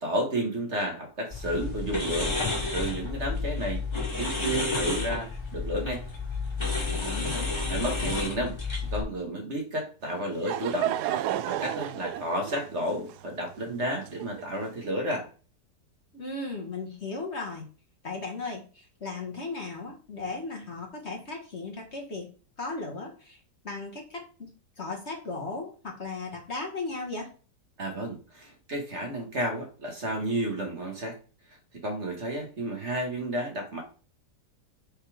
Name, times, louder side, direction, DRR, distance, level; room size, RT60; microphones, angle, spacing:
voice 1, 0.0-2.3 2.7-3.8 4.2-6.0 7.7-11.0 11.4-15.3 27.8-31.1 31.8-33.8, right 1 dB, 40° right, 2 dB, 1.7 m, -32 dB
sound 1, 1.3-9.0, left 3 dB, 15° left, 2.4 m, -30 dB
voice 2, 7.0-7.5 16.1-17.7 18.0-18.6 19.0-22.3 22.6-23.4 23.6-24.5 24.8-27.3, left 3 dB, 40° left, 1 dB, 1.6 m, -36 dB
Laughter / Crowd, 10.0-14.7, right 12 dB, 75° right, 1.0 m, -32 dB
6.7 x 4.2 x 4.9 m, 0.38 s
omnidirectional pair, 1.9 m